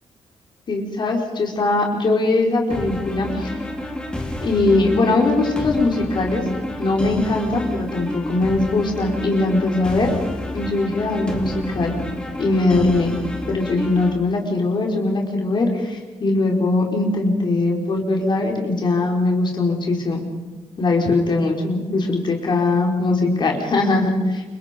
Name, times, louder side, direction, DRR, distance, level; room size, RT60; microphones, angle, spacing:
voice 1, 0.7-3.6 4.4-6.5 6.8-10.2 10.5-12.0 12.4-13.1 13.5-20.2 20.8-24.4, left 2 dB, 45° left, 0 dB, 4.7 m, -21 dB
sound 1, 2.7-14.1, left 1 dB, 10° left, 3.5 m, -30 dB
29.0 x 26.0 x 5.3 m, 1.3 s
wide cardioid pair, 150°, 11 cm